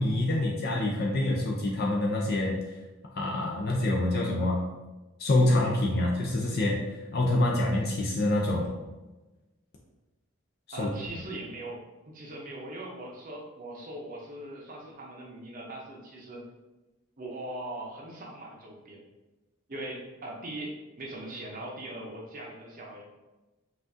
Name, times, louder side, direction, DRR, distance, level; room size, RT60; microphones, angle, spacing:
voice 1, 0.0-2.5 3.1-4.6 5.2-6.8 7.1-8.7 10.7-10.9, left 1 dB, 45° left, -2 dB, 0.5 m, -26 dB
voice 2, 10.7-16.4 17.2-19.0 19.7-23.0, right 1 dB, 40° right, -2 dB, 0.6 m, -40 dB
5.7 x 2.5 x 2.6 m, 1.1 s
head